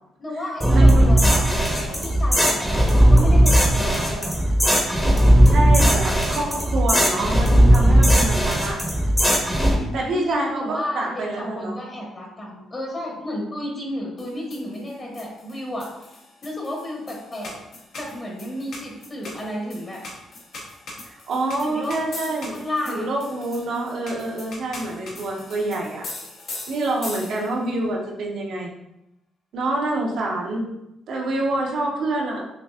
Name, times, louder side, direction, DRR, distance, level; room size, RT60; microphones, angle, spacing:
voice 1, 0.2-1.5 1.9-4.3 9.5-17.5 18.0-20.0 21.6-22.0 22.5-23.1, left 1 dB, 30° left, -2 dB, 1.2 m, -32 dB
sound 1, 0.6-9.8, right 1 dB, 5° left, 0.9 m, -17 dB
voice 2, 0.7-1.1 5.5-8.8 9.9-11.7 21.1-22.5 22.9-26.0 26.7-28.7 29.5-30.7 31.1-32.5, right 2 dB, 70° right, -1 dB, 0.9 m, -26 dB
sound 2, 14.2-27.7, left 2 dB, 65° left, 1.2 m, -40 dB
5.9 x 2.6 x 2.3 m, 0.86 s
cardioid pair, 90°, 0 cm